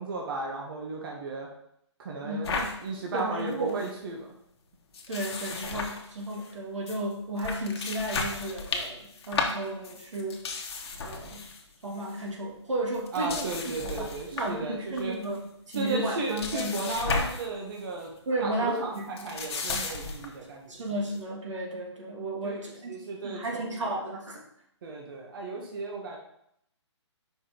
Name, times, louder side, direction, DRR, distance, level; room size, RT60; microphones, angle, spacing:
voice 1, 0.0-1.5 2.0-4.3 13.1-15.2 15.7-20.7 22.4-22.6 22.9-23.6 24.8-26.2, right 3 dB, 50° right, -1 dB, 1.3 m, -35 dB
voice 2, 2.2-2.7 3.1-3.8 5.1-10.4 11.0-11.5 11.8-13.5 13.8-16.7 18.2-19.4 20.7-22.9 23.2-24.4, right 1 dB, 85° right, -1 dB, 1.8 m, -33 dB
sound 1, 2.4-2.7 3.2-3.3 3.5-3.9 4.9-6.5 6.9-7.0 7.4-11.6 11.9-12.2 12.9-14.6 15.0-15.4 15.7-17.5 17.8-18.0 18.9-20.3, left 4 dB, 55° left, 1.2 m, -34 dB
5.2 x 5.0 x 3.9 m, 0.74 s
hypercardioid pair, 150°, 15 cm